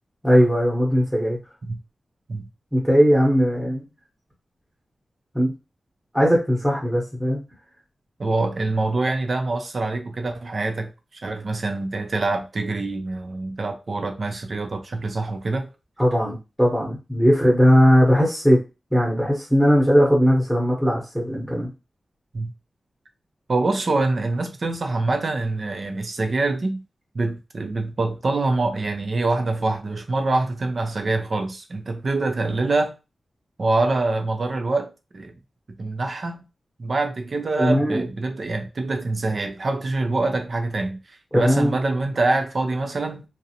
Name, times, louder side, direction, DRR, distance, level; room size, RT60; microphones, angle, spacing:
voice 1, 0.2-1.4 2.7-3.9 5.3-5.5 6.1-7.4 16.0-18.6 18.9-21.7 37.6-38.1 41.3-41.7, equal, 5° left, 0.9 m, -18 dB
voice 2, 8.2-10.9 11.2-15.7 22.3-22.5 23.5-26.8 27.1-32.9 33.6-35.3 35.8-36.4 36.8-43.2, right 2 dB, 45° right, 0.5 m, -25 dB
2.5 x 2.0 x 2.7 m
wide cardioid pair, 145°, 0 cm